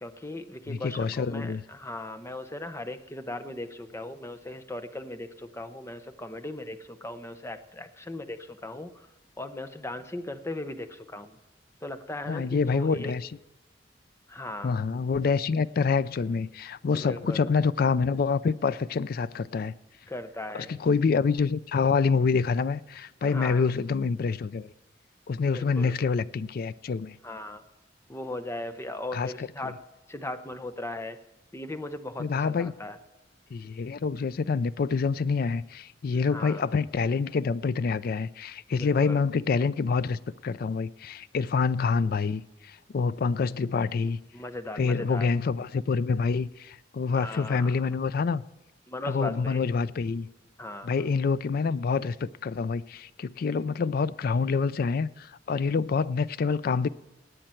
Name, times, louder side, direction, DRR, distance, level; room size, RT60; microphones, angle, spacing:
voice 1, 0.0-9.1 9.4-11.4 11.8-13.1 14.3-14.8 16.9-17.5 20.1-20.7 23.2-23.7 25.5-26.0 27.2-27.6 28.1-29.8 30.1-31.2 31.5-33.0 36.1-36.7 38.7-39.2 44.3-45.3 47.1-47.8 48.9-49.6 50.6-50.9, left 1 dB, 15° left, 0.7 m, -38 dB
voice 2, 0.7-1.6 12.3-13.3 14.6-19.7 20.5-24.7 25.3-27.2 29.1-29.3 32.2-32.7 33.5-44.2 44.8-48.4 49.0-50.3 50.8-56.9, left 5 dB, 55° left, 0.4 m, -27 dB
18.0 x 8.8 x 4.4 m
head